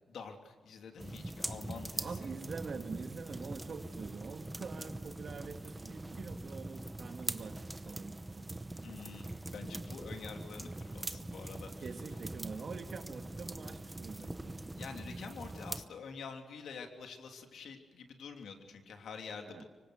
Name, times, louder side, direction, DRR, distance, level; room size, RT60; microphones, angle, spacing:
voice 1, 0.1-2.2 8.8-11.7 14.7-19.6, left 5 dB, 80° left, 4 dB, 3.1 m, -47 dB
sound 1, 1.0-15.8, right 2 dB, 10° right, 0.9 m, -43 dB
voice 2, 2.0-8.5 11.8-14.7 19.4-19.6, right 5 dB, 50° right, 6 dB, 2.1 m, -45 dB
26.0 x 24.5 x 6.6 m, 1.5 s
wide cardioid pair, 155°, 0 cm